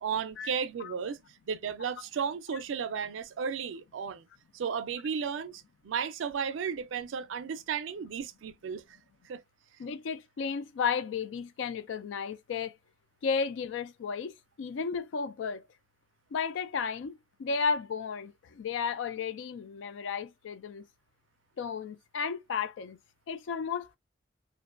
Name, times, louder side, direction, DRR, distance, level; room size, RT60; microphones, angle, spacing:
voice 1, 0.0-1.2 1.5-4.3 4.5-8.8 9.3-9.4, right 6 dB, 85° right, 0.4 m, -34 dB
voice 2, 9.8-12.7 13.2-15.6 16.3-20.9 21.6-23.0 23.3-24.0, left 5 dB, 80° left, 0.3 m, -33 dB
2.5 x 2.2 x 2.3 m
head